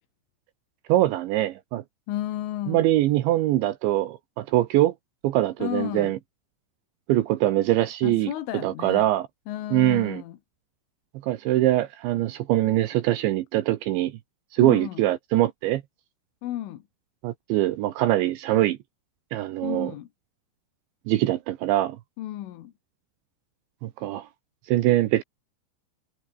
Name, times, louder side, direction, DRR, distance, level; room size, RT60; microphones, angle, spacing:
voice 1, 0.9-1.8 2.7-4.9 5.2-6.2 7.1-8.3 8.6-9.3 9.7-10.2 11.2-14.2 14.5-15.8 17.2-18.8 19.3-19.9 21.1-22.0 23.8-24.3 24.7-25.2, right 15 dB, 75° right, 3.3 m, -23 dB
voice 2, 2.1-2.8 5.6-6.1 8.0-9.1 9.5-10.4 14.6-15.0 16.4-16.8 19.6-20.1 22.2-22.7, left 13 dB, 85° left, 4.3 m, -32 dB
omnidirectional pair, 5.5 m